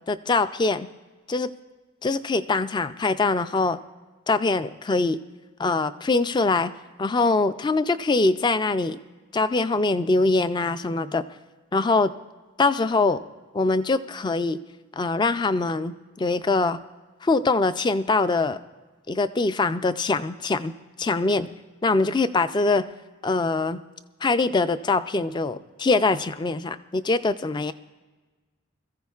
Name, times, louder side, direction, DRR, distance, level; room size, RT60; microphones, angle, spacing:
voice 1, 0.1-0.9 1.3-1.5 2.0-3.8 4.3-5.2 5.6-6.7 7.0-9.0 9.3-11.2 11.7-12.1 12.6-13.2 13.5-14.6 15.0-16.8 17.2-18.6 19.1-20.7 21.0-21.5 21.8-22.8 23.2-23.8 24.2-27.7, left 3 dB, 20° left, 13 dB, 0.3 m, -23 dB
22.0 x 14.5 x 2.4 m, 1.3 s
head